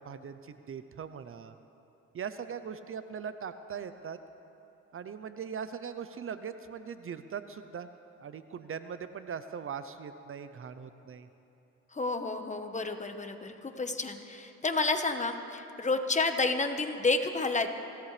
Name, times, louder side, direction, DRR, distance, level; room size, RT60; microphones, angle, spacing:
voice 1, 0.0-1.5 2.1-4.2 4.9-7.9 8.2-11.3, right 7 dB, 45° right, 11 dB, 0.7 m, -40 dB
voice 2, 11.9-17.7, left 3 dB, 25° left, 6 dB, 1.3 m, -30 dB
25.0 x 16.5 x 3.4 m, 2.9 s
cardioid pair, 90°, 30 cm